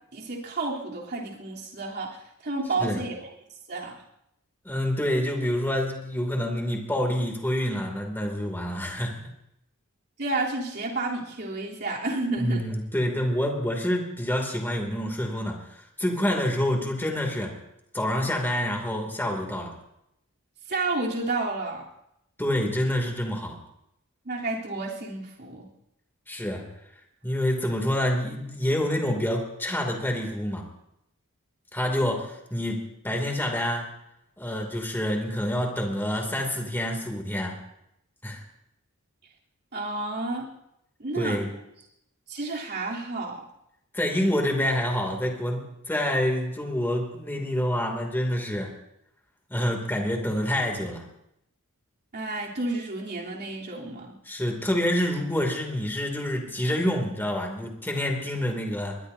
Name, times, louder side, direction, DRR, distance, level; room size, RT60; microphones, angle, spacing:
voice 1, 0.1-3.3 3.7-4.0 10.2-12.6 20.7-21.9 24.2-25.7 39.7-40.4 41.0-41.4 42.3-43.4 52.1-54.2, right 2 dB, 50° right, -3 dB, 3.5 m, -31 dB
voice 2, 4.6-9.2 12.4-17.5 17.9-19.7 22.4-23.6 26.3-26.7 27.2-30.7 31.7-33.9 34.4-37.6 38.2-38.4 41.1-41.5 43.9-48.7 49.5-51.0 54.2-59.0, left 1 dB, 10° left, 1 dB, 2.8 m, -27 dB
22.5 x 20.5 x 2.8 m, 0.80 s
head